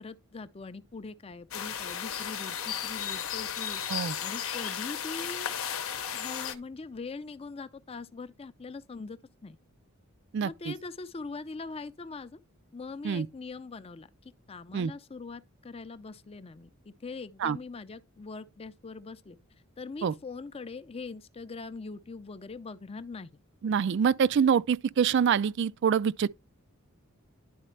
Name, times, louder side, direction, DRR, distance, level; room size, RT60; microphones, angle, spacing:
voice 1, 0.0-3.8 4.2-5.6 5.9-9.6 10.4-12.4 12.7-19.4 19.8-23.4, left 4 dB, 30° left, 0.5 m, -42 dB
sound 1, 1.5-6.5, left 9 dB, 75° left, 0.8 m, -34 dB
voice 2, 10.3-10.7 13.0-13.3 14.7-14.9 17.4-17.6 20.0-20.1 23.6-26.3, right 7 dB, 55° right, 0.3 m, -25 dB
11.0 x 4.1 x 3.2 m
head